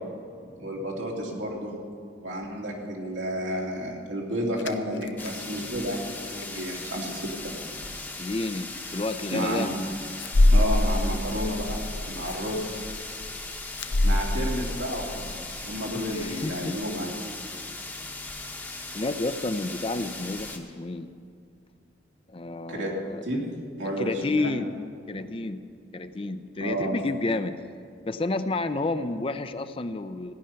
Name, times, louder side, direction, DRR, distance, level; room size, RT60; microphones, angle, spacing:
voice 1, 0.6-1.8 2.2-7.2 9.3-9.6 10.5-11.8 12.1-12.8 14.0-17.1 22.7-22.9 23.2-23.5 23.8-24.5 26.6-26.9, equal, 90° right, -2 dB, 2.7 m, -31 dB
sound 1, 4.6-5.4 5.8-6.0 6.4-6.5 7.2-7.5 7.8-8.0 8.3-8.4 10.2-16.1 16.4-16.5 16.8-16.9 20.5-20.6, left 1 dB, 85° left, 0.7 m, -26 dB
sound 2, 5.2-20.6, left 2 dB, 10° left, 1.0 m, -38 dB
voice 2, 8.2-9.7 15.9-16.9 18.9-21.1 22.3-23.2 23.8-24.8 25.1-25.6 25.9-27.6 28.1-30.3, left 2 dB, 30° left, 11 dB, 0.5 m, -30 dB
16.0 x 10.5 x 5.7 m, 2.3 s
head